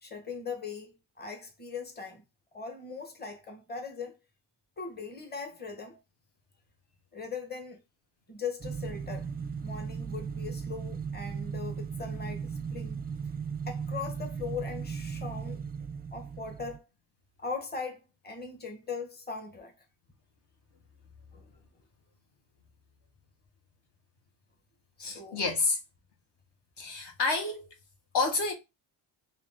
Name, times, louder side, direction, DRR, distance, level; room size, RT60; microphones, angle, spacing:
voice 1, 0.0-2.2 2.5-4.2 4.8-6.0 7.1-7.8 8.3-9.3 9.6-13.0 13.7-15.6 16.1-16.9 17.4-19.7 21.3-21.5 25.0-25.5, left 5 dB, 20° left, 1.2 m, -40 dB
sound 1, 8.6-16.8, right 6 dB, 20° right, 0.5 m, -37 dB
voice 2, 25.0-25.8 26.8-27.7 28.1-28.5, left 3 dB, 60° left, 1.4 m, -29 dB
3.6 x 2.8 x 3.6 m
cardioid pair, 95°, 46 cm